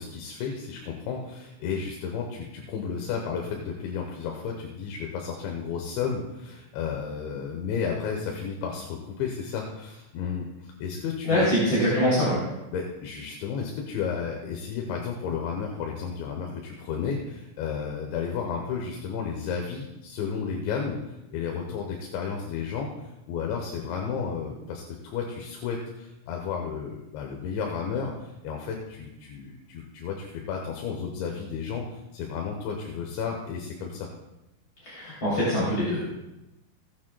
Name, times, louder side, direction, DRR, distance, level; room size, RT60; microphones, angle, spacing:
voice 1, 0.0-11.5 12.7-34.1, left 6 dB, 75° left, 1 dB, 3.2 m, -32 dB
voice 2, 11.2-12.4 34.8-36.0, equal, 30° left, -8 dB, 3.1 m, -24 dB
17.5 x 8.9 x 2.3 m, 0.94 s
omnidirectional pair, 5.6 m